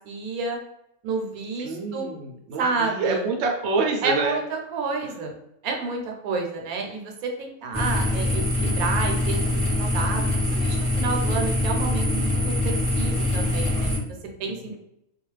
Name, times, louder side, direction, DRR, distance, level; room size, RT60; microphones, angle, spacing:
voice 1, 0.0-0.6 1.0-2.1 2.6-3.2 4.0-5.3 5.6-14.1 14.4-14.8, right 4 dB, 80° right, 2 dB, 1.1 m, -30 dB
voice 2, 1.6-4.4 14.4-14.8, right 3 dB, 60° right, 1 dB, 0.7 m, -27 dB
sound 1, 7.7-14.0, left 1 dB, 10° left, 0.4 m, -24 dB
2.4 x 2.3 x 3.1 m, 0.78 s
omnidirectional pair, 1.5 m